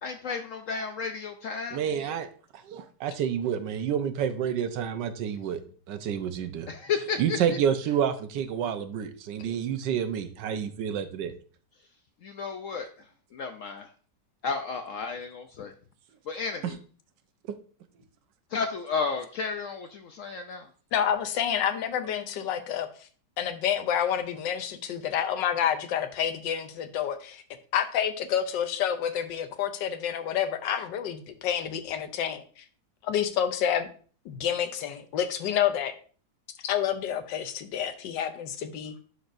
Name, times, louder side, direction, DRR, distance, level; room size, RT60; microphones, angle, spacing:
voice 1, 0.0-2.2 6.7-7.4 12.2-12.9 13.3-13.9 14.4-15.7 16.3-16.8 18.5-20.7, left 5 dB, 70° left, 6 dB, 0.7 m, -33 dB
voice 2, 1.7-2.3 2.7-5.6 5.9-6.7 7.2-11.3 16.6-16.7, right 8 dB, 80° right, 9 dB, 1.4 m, -29 dB
voice 3, 20.9-22.9 23.4-27.4 27.7-32.6 33.0-33.9 34.2-35.9 36.6-38.9, left 9 dB, 85° left, 9 dB, 1.4 m, -28 dB
11.0 x 4.2 x 2.6 m, 0.42 s
omnidirectional pair, 1.9 m